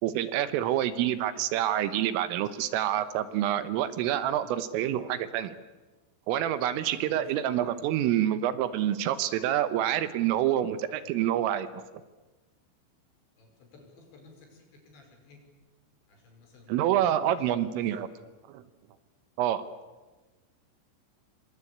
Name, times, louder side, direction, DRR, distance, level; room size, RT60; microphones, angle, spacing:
voice 1, 0.0-5.5 6.3-11.7 16.7-18.1 18.5-18.6 19.4-19.6, right 11 dB, 80° right, 12 dB, 3.6 m, -27 dB
voice 2, 6.8-7.3 7.6-7.8 13.4-15.4 16.1-18.0, left 3 dB, 60° left, 3 dB, 7.7 m, -53 dB
27.0 x 24.0 x 8.7 m, 1.2 s
omnidirectional pair, 6.0 m